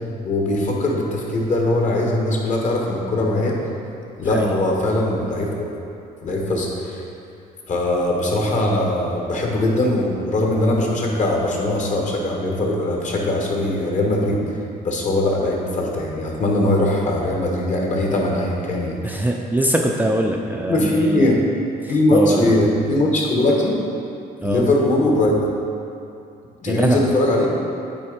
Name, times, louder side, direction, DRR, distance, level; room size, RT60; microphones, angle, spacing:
voice 1, 0.2-3.6 4.2-5.5 6.2-7.0 7.7-14.4 14.8-19.2 20.7-21.4 21.9-23.8 24.4-25.3 26.6-27.5, left 1 dB, 45° left, -1 dB, 1.3 m, -20 dB
voice 2, 4.2-4.6 19.0-21.4 21.8-22.6 24.4-24.6 26.7-27.0, right 1 dB, 10° right, 0 dB, 0.4 m, -22 dB
8.7 x 3.5 x 5.1 m, 2.6 s
cardioid pair, 110°, 17 cm